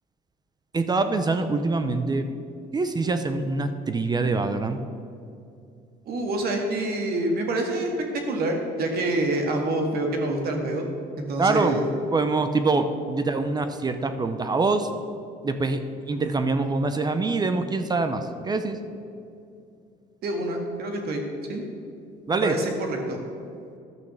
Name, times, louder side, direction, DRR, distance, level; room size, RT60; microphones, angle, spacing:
voice 1, 0.7-2.3 2.7-4.8 11.4-11.8 12.1-14.9 15.4-18.8 22.3-22.5, right 3 dB, 25° right, 9 dB, 0.6 m, -24 dB
voice 2, 6.1-7.9 8.3-10.9 11.2-11.8 20.2-21.2 21.5-21.6 22.4-23.2, right 2 dB, 65° right, 3 dB, 2.0 m, -26 dB
12.0 x 6.2 x 7.0 m, 2.5 s
cardioid pair, 110°, 17 cm